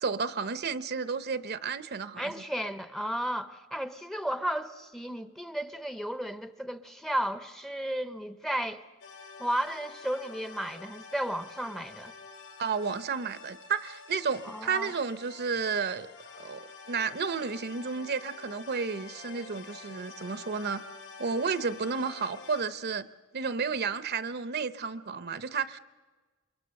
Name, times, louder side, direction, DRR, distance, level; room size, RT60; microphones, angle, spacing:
voice 1, 0.0-2.3 12.6-16.1 16.4-20.8 21.2-23.1 23.3-25.8, right 5 dB, 50° right, 14 dB, 0.7 m, -32 dB
voice 2, 2.2-8.8 9.4-12.1 14.4-14.9, equal, ahead, 11 dB, 0.7 m, -33 dB
sound 1, 9.0-22.6, left 4 dB, 60° left, 5.0 m, -48 dB
28.0 x 23.5 x 6.5 m, 1.3 s
head